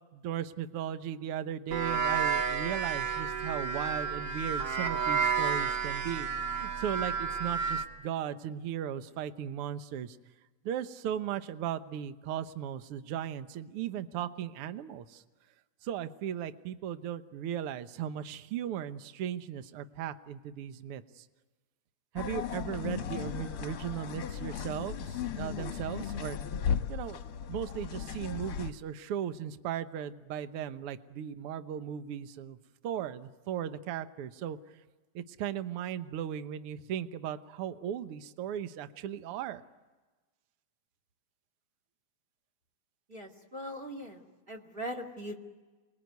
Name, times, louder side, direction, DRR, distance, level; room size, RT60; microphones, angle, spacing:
voice 1, 0.1-10.2 10.6-15.2 15.8-21.2 22.1-26.4 26.9-27.2 27.5-32.6 32.8-34.6 35.1-39.6, right 10 dB, 60° right, 10 dB, 1.7 m, -37 dB
sound 1, 1.7-7.8, right 6 dB, 40° right, 2.0 m, -31 dB
sound 2, 22.2-28.7, left 8 dB, 60° left, 1.7 m, -36 dB
voice 2, 43.1-44.2 44.5-45.4, equal, 20° right, 4 dB, 2.3 m, -40 dB
29.5 x 21.5 x 9.4 m, 1.2 s
omnidirectional pair, 3.3 m